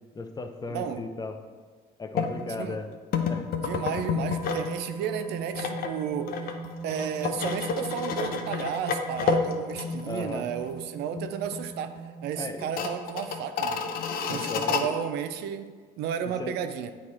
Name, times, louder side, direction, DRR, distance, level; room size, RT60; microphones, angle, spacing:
voice 1, 0.1-1.4 2.0-2.9 3.3-3.5 10.0-10.5 12.3-12.7 14.3-14.9 16.4-16.6, left 3 dB, 25° left, 7 dB, 0.5 m, -36 dB
voice 2, 0.7-1.0 2.4-2.8 3.6-6.4 6.8-13.9 14.3-15.7 16.0-16.9, right 8 dB, 80° right, 10 dB, 0.5 m, -33 dB
sound 1, 2.1-2.3 3.1-4.7 5.0-10.3 10.6-10.7 11.2-11.7 12.0-12.1 12.6-14.8, left 5 dB, 60° left, 0.7 m, -30 dB
sound 2, 4.3-12.9, right 5 dB, 25° right, 0.8 m, -41 dB
8.7 x 3.2 x 4.2 m, 1.5 s
cardioid pair, 110°, 17 cm